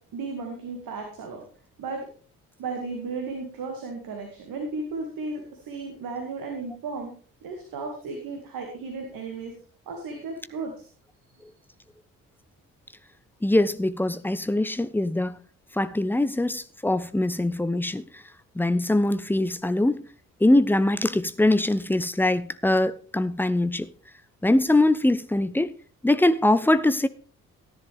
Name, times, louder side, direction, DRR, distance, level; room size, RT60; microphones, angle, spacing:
voice 1, 0.1-1.4 1.8-2.0 2.6-7.1 7.4-9.5 9.9-10.9 11.3-11.4, right 3 dB, 55° right, 2.3 m, -34 dB
voice 2, 13.4-15.4 15.7-18.2 18.5-20.0 20.4-23.9 24.4-25.7 26.0-27.1, left 1 dB, 5° left, 0.7 m, -22 dB
14.5 x 10.5 x 3.5 m
figure-of-eight pair, 40°, 41 cm